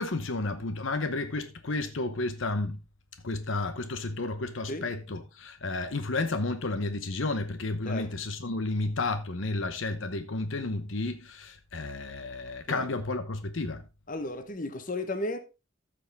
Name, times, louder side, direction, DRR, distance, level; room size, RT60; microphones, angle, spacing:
voice 1, 0.0-2.8 3.2-13.8, left 2 dB, 65° left, 0.9 m, -32 dB
voice 2, 14.1-15.4, left 2 dB, 40° left, 1.1 m, -34 dB
14.0 x 6.1 x 3.4 m
head